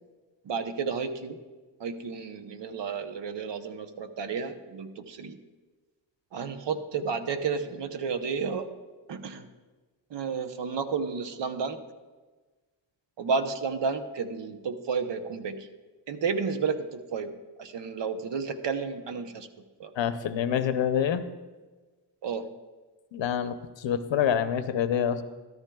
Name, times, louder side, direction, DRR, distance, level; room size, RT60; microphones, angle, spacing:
voice 1, 0.4-1.4 1.8-5.4 6.3-8.7 9.1-9.5 10.1-11.8 13.2-15.7 16.1-19.5 19.8-19.9 22.2-22.5, right 5 dB, 70° right, 8 dB, 0.9 m, -32 dB
voice 2, 20.0-21.3 23.1-25.2, left 8 dB, 75° left, 10 dB, 0.8 m, -26 dB
13.5 x 13.0 x 2.3 m, 1.3 s
cardioid pair, 75°, 45 cm